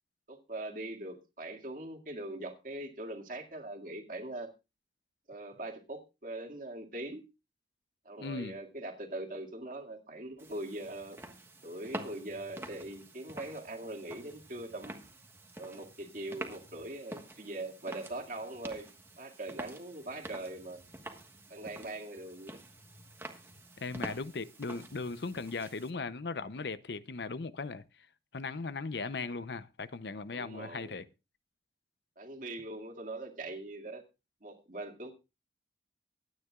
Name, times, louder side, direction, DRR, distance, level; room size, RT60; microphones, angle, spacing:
voice 1, 0.3-4.5 5.3-7.2 8.1-11.2 11.6-15.0 15.6-18.9 19.2-20.8 21.5-22.6 30.3-31.0 32.2-34.0 34.4-35.1, right 2 dB, 45° right, 2.1 m, -41 dB
voice 2, 8.2-8.6 23.8-27.8 28.3-31.0, left 4 dB, 70° left, 0.7 m, -38 dB
sound 1, 10.4-25.9, right 1 dB, 15° right, 1.4 m, -48 dB
23.5 x 9.5 x 2.4 m
head